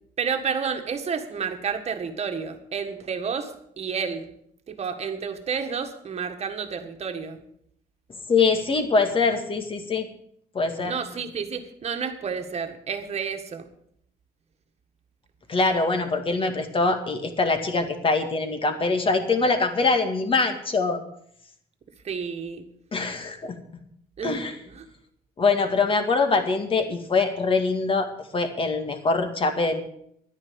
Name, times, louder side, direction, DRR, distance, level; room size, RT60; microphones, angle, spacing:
voice 1, 0.2-4.3 4.7-7.4 10.8-13.7 22.0-22.7 24.2-24.9, right 6 dB, 40° right, 6 dB, 1.8 m, -30 dB
voice 2, 8.3-10.1 10.5-11.0 15.5-21.0 22.9-23.6 24.2-24.5 25.4-29.8, left 3 dB, 30° left, 7 dB, 2.0 m, -23 dB
11.5 x 9.8 x 7.1 m, 0.69 s
cardioid pair, 110°, 17 cm